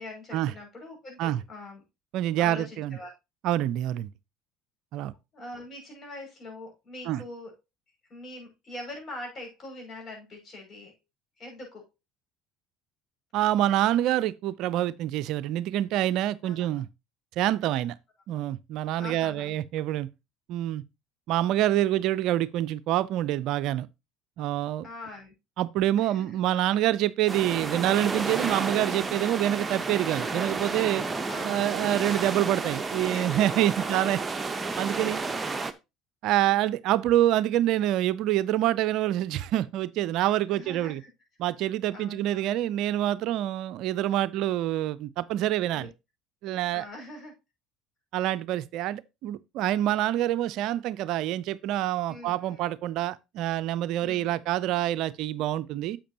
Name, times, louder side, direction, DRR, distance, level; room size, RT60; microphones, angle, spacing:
voice 1, 0.0-1.8 2.4-3.1 5.3-7.5 8.1-10.9 11.4-11.8 16.4-16.7 18.9-19.6 24.8-25.3 26.0-26.4 31.3-31.7 33.0-33.4 33.8-34.2 35.4-35.7 36.5-36.6 40.5-41.0 41.9-42.5 45.7-45.9 46.7-47.3 52.1-52.6 54.0-54.3, left 2 dB, 40° left, 6.1 m, -43 dB
voice 2, 2.1-3.0 3.4-4.1 4.9-5.1 7.1-7.2 13.3-16.9 17.4-17.9 18.3-20.1 20.5-20.8 21.3-23.9 24.4-24.9 25.6-31.1 31.4-34.2 34.8-35.2 36.2-41.0 41.4-45.9 46.4-46.8 48.1-56.0, right 13 dB, 65° right, 0.4 m, -26 dB
sound 1, 27.3-35.7, right 3 dB, 20° right, 1.0 m, -31 dB
10.0 x 7.3 x 2.8 m
hypercardioid pair, 70°, 0 cm